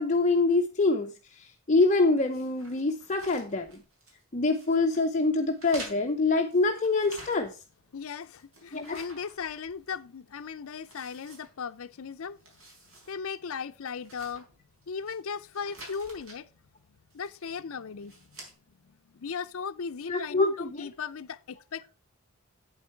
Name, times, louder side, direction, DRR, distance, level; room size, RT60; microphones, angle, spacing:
voice 1, 0.0-3.8 4.3-7.6 8.7-9.0 20.1-20.9, left 3 dB, 35° left, 0.7 m, -25 dB
sound 1, 2.3-4.2 4.5-5.0 5.6-7.7 8.0-10.0 10.3-10.4 10.8-12.0 12.3-13.1 13.4-13.5 14.0-15.2 15.5-16.4 17.1-17.5 18.0-18.5, right 2 dB, 70° right, 4.2 m, -49 dB
voice 2, 7.9-12.4 13.1-14.5 14.9-16.5 17.1-18.2 19.1-21.9, left 6 dB, 70° left, 0.5 m, -37 dB
8.6 x 8.3 x 4.5 m
head